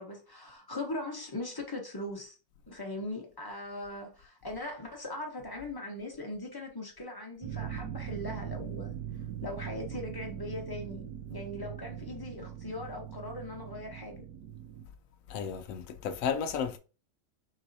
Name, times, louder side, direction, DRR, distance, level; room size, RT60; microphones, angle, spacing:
voice 1, 0.0-2.4 2.7-8.9 9.4-14.2, left 2 dB, 35° left, 0.3 m, -40 dB
sound 1, 7.4-14.8, right 10 dB, 70° right, 1.1 m, -41 dB
voice 2, 15.3-16.8, left 7 dB, 70° left, 0.8 m, -33 dB
4.7 x 4.1 x 2.7 m
omnidirectional pair, 1.9 m